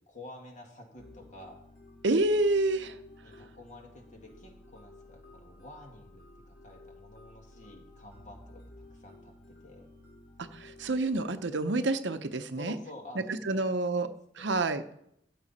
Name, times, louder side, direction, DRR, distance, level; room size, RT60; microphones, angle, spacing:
voice 1, 0.0-1.6 3.2-8.6 8.9-9.9 12.6-13.6 13.9-14.1 14.4-14.5, left 1 dB, 45° left, 2 dB, 2.1 m, -50 dB
sound 1, 1.0-11.0, left 2 dB, 60° left, 2.5 m, -54 dB
voice 2, 2.0-3.0 10.4-12.8 13.3-14.1 14.4-14.8, right 2 dB, 70° right, 9 dB, 0.8 m, -28 dB
14.0 x 7.7 x 4.2 m, 0.75 s
head